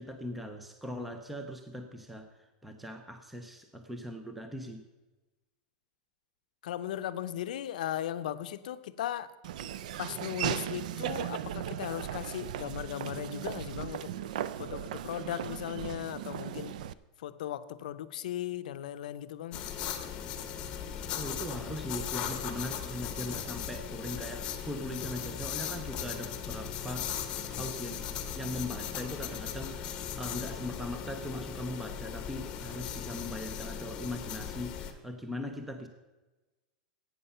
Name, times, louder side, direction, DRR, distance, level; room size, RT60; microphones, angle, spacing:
voice 1, 0.0-4.9 21.2-35.9, left 1 dB, ahead, 0.5 m, -40 dB
voice 2, 6.6-9.3 10.0-14.1 14.6-16.8 17.2-19.6, left 11 dB, 70° left, 0.6 m, -37 dB
Laughter / Walk footsteps, 9.4-16.9, right 11 dB, 65° right, 0.4 m, -37 dB
sound 1, 19.5-34.9, left 8 dB, 20° left, 0.9 m, -38 dB
11.5 x 8.7 x 5.5 m
supercardioid pair, 180°, 5 cm